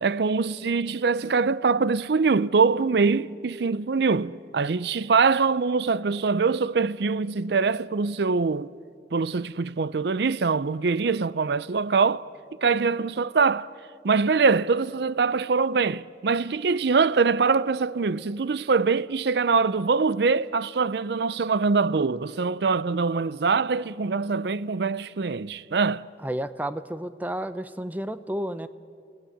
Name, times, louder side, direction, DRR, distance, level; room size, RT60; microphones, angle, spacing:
voice 1, 0.0-8.7 9.1-12.3 12.6-13.7 14.0-26.0, right 4 dB, 65° right, 0.5 m, -23 dB
voice 2, 26.2-28.7, right 1 dB, 10° right, 0.6 m, -31 dB
29.0 x 16.5 x 9.9 m
head